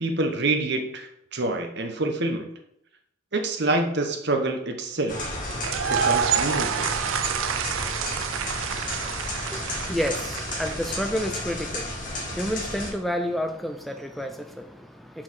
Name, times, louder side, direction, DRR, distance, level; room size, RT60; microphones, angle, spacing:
voice 1, 0.0-2.5 3.3-5.3 5.9-6.9, right 2 dB, 55° right, 1.0 m, -27 dB
sound 1, 5.1-12.9, left 1 dB, 40° left, 2.1 m, -32 dB
sound 2, 5.5-11.5, right 8 dB, 85° right, 0.4 m, -28 dB
voice 2, 9.5-15.2, equal, ahead, 0.4 m, -30 dB
5.9 x 4.6 x 6.2 m
head